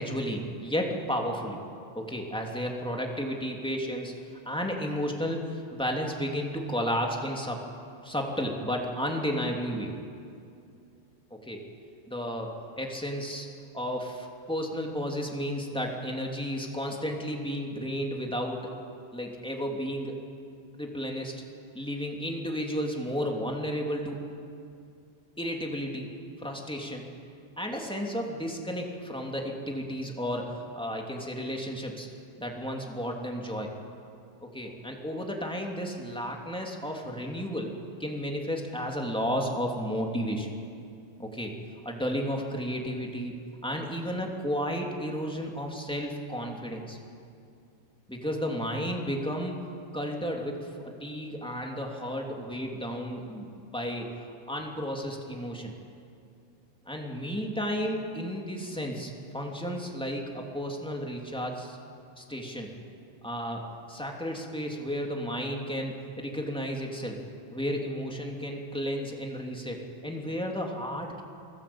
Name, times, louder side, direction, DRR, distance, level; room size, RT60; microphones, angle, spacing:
voice 1, 0.0-1.6 1.9-4.2 4.4-7.6 8.0-10.0 11.3-11.6 12.1-13.5 13.7-18.7 19.1-20.2 20.7-21.3 21.7-24.2 25.4-26.1 26.4-27.0 27.5-32.1 32.4-33.7 34.4-37.7 38.0-40.5 41.2-41.5 41.8-43.3 43.6-47.0 48.1-49.6 49.9-54.1 54.5-55.7 56.8-61.8 62.2-62.7 63.2-63.6 63.9-67.2 67.5-71.2, equal, ahead, 0 dB, 1.7 m, -33 dB
29.0 x 21.0 x 8.8 m, 2.4 s
omnidirectional pair, 5.2 m